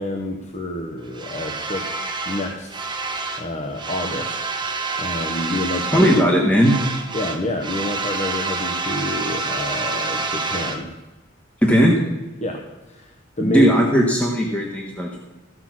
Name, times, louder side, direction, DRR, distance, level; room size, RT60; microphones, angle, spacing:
voice 1, 0.0-2.9 3.4-4.3 5.0-6.1 7.1-11.0 12.4-12.6 12.9-13.1 13.4-13.7, left 1 dB, 35° left, 1 dB, 1.1 m, -28 dB
sound 1, 1.1-3.5 3.7-6.3 6.6-10.8, right 3 dB, 25° right, 1.0 m, -28 dB
voice 2, 5.9-6.8 11.6-12.0 13.4-15.2, equal, 5° left, -2 dB, 1.3 m, -17 dB
14.5 x 5.7 x 6.1 m, 1.1 s
head